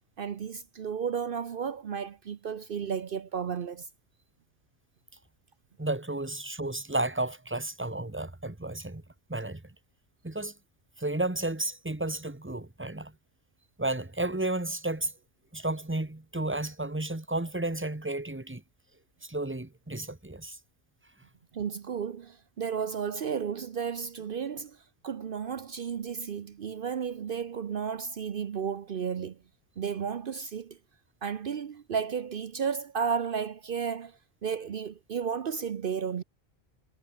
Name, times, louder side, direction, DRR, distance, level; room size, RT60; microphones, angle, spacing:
voice 1, 0.2-3.9 21.5-29.4 29.8-30.8 31.2-36.2, right 7 dB, 60° right, 0.9 m, -33 dB
voice 2, 5.8-9.0 9.3-9.7 10.2-10.5 11.0-13.1 13.8-15.1 15.5-18.6 19.2-20.6, right 2 dB, 10° right, 1.3 m, -32 dB
omnidirectional pair, 1.1 m